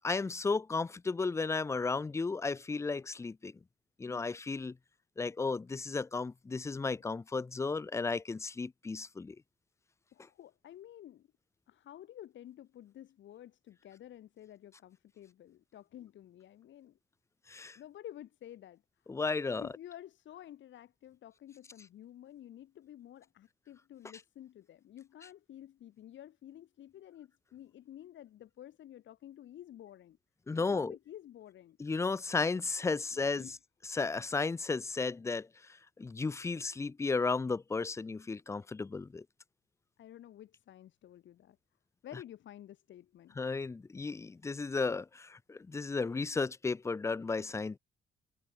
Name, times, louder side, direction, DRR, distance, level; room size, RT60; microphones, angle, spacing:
voice 1, 0.0-3.5 4.0-4.8 5.2-9.4 17.5-17.8 19.1-19.6 30.5-30.9 31.8-33.5 33.9-35.5 36.0-39.2 43.4-47.8, left 4 dB, 15° left, 0.4 m, -34 dB
voice 2, 10.1-11.3 11.7-17.0 17.8-18.8 19.5-30.2 30.5-31.8 32.9-33.6 40.0-41.6 42.0-43.4, left 12 dB, 70° left, 1.7 m, -51 dB
cardioid pair, 90°, 20 cm